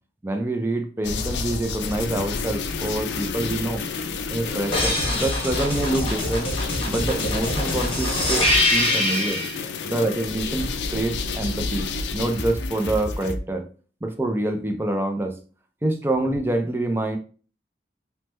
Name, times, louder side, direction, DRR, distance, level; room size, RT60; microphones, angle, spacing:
voice 1, 0.2-3.8 4.3-6.5 6.8-9.4 9.8-13.6 14.0-15.4 15.8-17.2, right 1 dB, 15° right, 4 dB, 0.4 m, -26 dB
sound 1, 1.0-13.3, left 4 dB, 75° left, 0.4 m, -30 dB
sound 2, 4.7-9.6 12.3-13.4, left 1 dB, 30° left, 0.9 m, -24 dB
3.1 x 2.1 x 3.1 m, 0.39 s
head